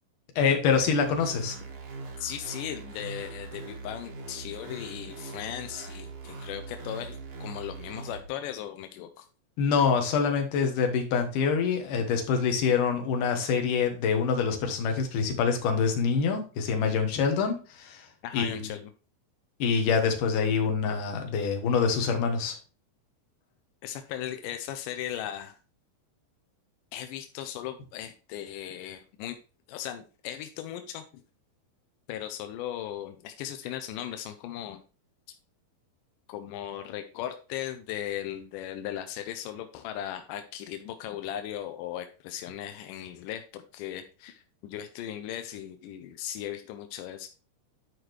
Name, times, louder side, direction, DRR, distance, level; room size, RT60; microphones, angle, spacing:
voice 1, 0.4-1.6 9.6-18.1 18.3-18.7 19.6-22.6, left 6 dB, 65° left, 4 dB, 2.5 m, -25 dB
sound 1, 0.7-8.2, right 3 dB, 70° right, 1.4 m, -41 dB
voice 2, 2.2-9.3 18.2-18.9 23.8-25.6 26.9-29.4 29.7-31.0 32.1-34.8 36.3-47.3, left 11 dB, 85° left, 7 dB, 2.0 m, -37 dB
10.5 x 4.9 x 3.1 m, 0.36 s
omnidirectional pair, 4.4 m